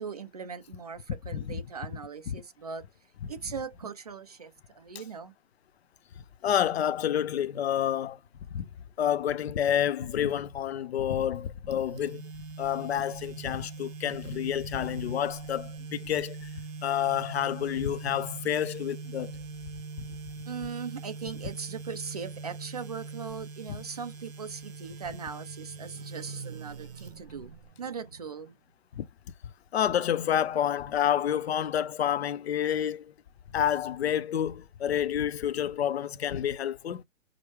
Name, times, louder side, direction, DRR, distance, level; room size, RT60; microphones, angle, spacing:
voice 1, 0.0-2.8 3.3-5.3 20.5-28.6, right 6 dB, 30° right, 0.4 m, -39 dB
voice 2, 6.4-8.2 8.5-8.7 9.0-12.2 12.6-16.5 16.8-19.3 29.0-29.1 29.7-33.1 33.5-37.0, left 10 dB, 50° left, 0.5 m, -29 dB
sound 1, 11.7-27.7, right 4 dB, 70° right, 1.1 m, -42 dB
4.8 x 2.0 x 3.1 m
hypercardioid pair, 150°, 42 cm